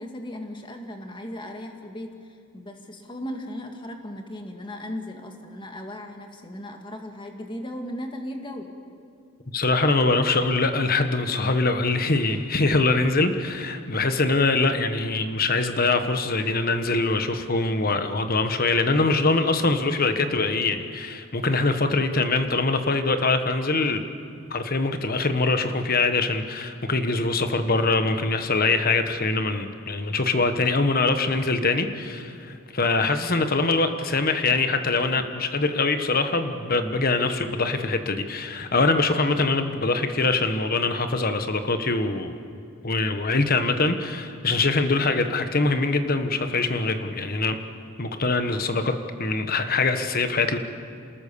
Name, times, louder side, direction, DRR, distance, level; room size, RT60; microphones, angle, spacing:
voice 1, 0.0-2.1 2.5-8.7 12.3-12.4 13.5-13.7, left 1 dB, 25° left, 3 dB, 2.1 m, -37 dB
voice 2, 9.5-24.0 24.5-42.4 42.8-47.5 48.0-48.9 49.2-50.6, left 3 dB, 45° left, 8 dB, 1.4 m, -23 dB
27.5 x 20.0 x 7.0 m, 2.4 s
head